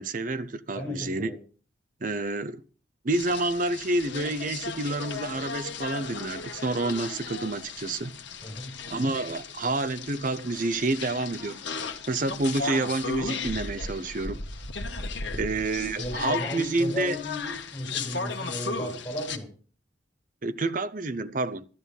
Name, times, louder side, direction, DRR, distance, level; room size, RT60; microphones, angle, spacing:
voice 1, 0.0-1.3 2.0-2.6 3.0-8.1 8.9-11.6 12.1-14.4 15.3-17.2 20.4-21.7, right 2 dB, 45° right, 0.7 m, -28 dB
voice 2, 0.7-1.4 8.4-8.9 15.2-15.5 16.0-19.5, left 1 dB, 15° left, 8.0 m, -35 dB
sound 1, 3.1-19.4, left 4 dB, 70° left, 1.5 m, -36 dB
13.0 x 12.0 x 5.4 m
head